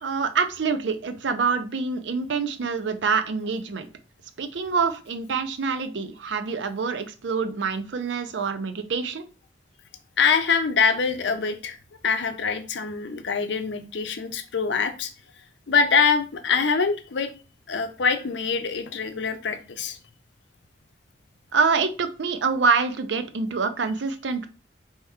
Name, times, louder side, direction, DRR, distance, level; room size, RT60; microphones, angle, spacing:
voice 1, 0.0-3.9 4.4-9.2 21.5-24.5, right 5 dB, 90° right, 9 dB, 0.5 m, -26 dB
voice 2, 10.2-11.8 12.0-15.1 15.7-17.3 17.7-20.0, left 5 dB, 85° left, 8 dB, 0.5 m, -24 dB
4.3 x 2.9 x 3.5 m, 0.34 s
head